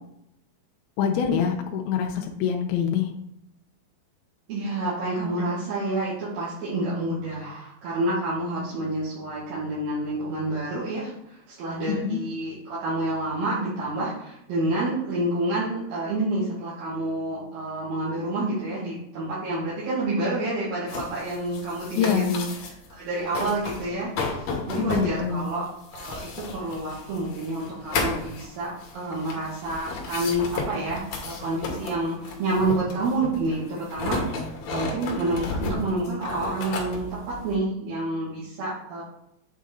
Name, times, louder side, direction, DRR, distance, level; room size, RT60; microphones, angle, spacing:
voice 1, 1.0-3.1 11.9-12.2 22.0-22.4 24.9-25.5, left 7 dB, 85° left, 2 dB, 2.5 m, -25 dB
voice 2, 4.5-25.6 25.9-39.0, right 2 dB, 75° right, -10 dB, 3.7 m, -29 dB
sound 1, 20.9-22.9 23.2-23.9 24.2-37.6, left 3 dB, 65° left, 2.0 m, -33 dB
8.4 x 4.1 x 3.7 m, 0.80 s
omnidirectional pair, 4.3 m